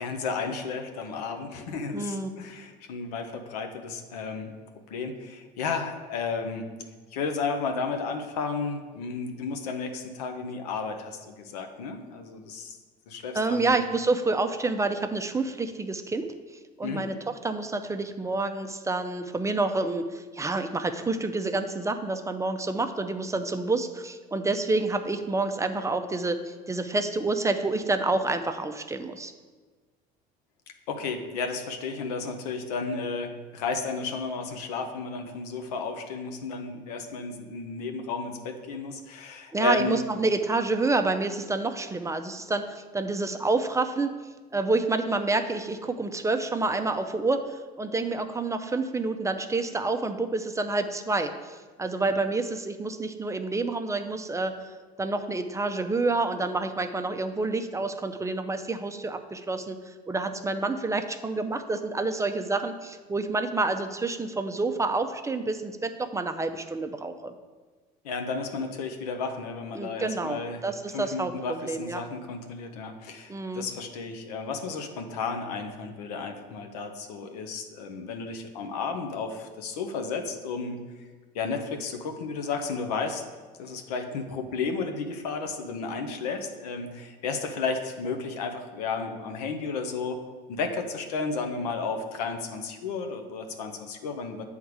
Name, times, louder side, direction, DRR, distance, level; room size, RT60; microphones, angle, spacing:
voice 1, 0.0-4.5 4.9-6.7 7.1-12.8 13.1-13.8 16.8-17.1 30.9-40.0 68.0-70.6 70.9-80.8 81.3-83.2 83.6-90.2 90.5-94.4, left 4 dB, 90° left, 5 dB, 0.7 m, -33 dB
voice 2, 1.9-2.3 13.3-16.3 16.8-17.2 17.4-29.3 39.5-44.1 44.5-54.7 55.0-67.3 69.7-72.0 73.3-73.7, right 3 dB, 15° right, 8 dB, 0.5 m, -28 dB
7.8 x 3.6 x 4.7 m, 1.4 s
supercardioid pair, 80°, 20 cm